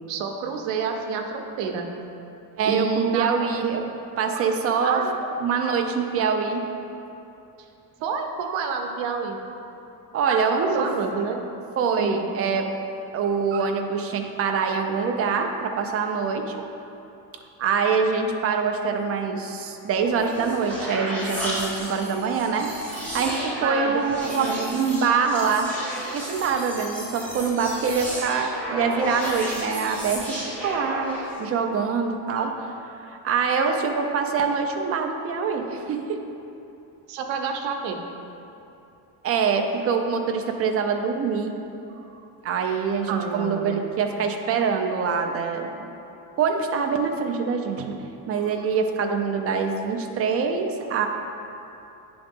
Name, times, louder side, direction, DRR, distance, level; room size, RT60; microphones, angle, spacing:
voice 1, 0.1-1.9 2.6-3.3 4.8-5.2 8.0-9.4 10.3-10.4 10.8-11.4 12.0-12.2 23.6-24.7 37.1-38.0 43.1-43.9, right 5 dB, 70° right, 4 dB, 0.8 m, -28 dB
voice 2, 2.6-3.8 4.2-5.0 5.4-6.7 10.1-10.9 11.8-12.7 13.1-16.4 17.6-22.7 23.1-25.7 26.1-32.7 33.0-36.2 39.2-41.5 42.4-45.9 46.4-48.0 48.3-51.1, right 5 dB, 35° right, 4 dB, 0.4 m, -24 dB
sound 1, 20.0-31.4, equal, 5° left, 1.2 m, -33 dB
9.6 x 3.9 x 3.6 m, 2.8 s
cardioid pair, 150°, 46 cm